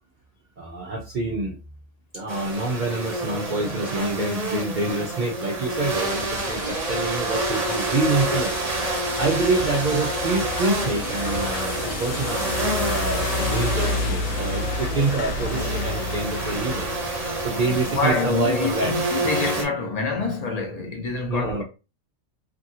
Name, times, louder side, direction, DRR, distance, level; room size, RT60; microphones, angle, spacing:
voice 1, 0.6-1.6 2.1-8.6 9.2-16.9 17.4-18.9 21.3-21.6, right 3 dB, 65° right, 0.4 m, -26 dB
sound 1, 2.3-19.6, right 2 dB, 35° right, 0.8 m, -28 dB
sound 2, 5.8-18.0, left 3 dB, 70° left, 1.0 m, -31 dB
sound 3, 5.9-14.1, right 1 dB, 5° right, 0.9 m, -39 dB
voice 2, 17.8-21.6, left 3 dB, 45° left, 0.5 m, -26 dB
2.7 x 2.6 x 2.7 m
omnidirectional pair, 1.4 m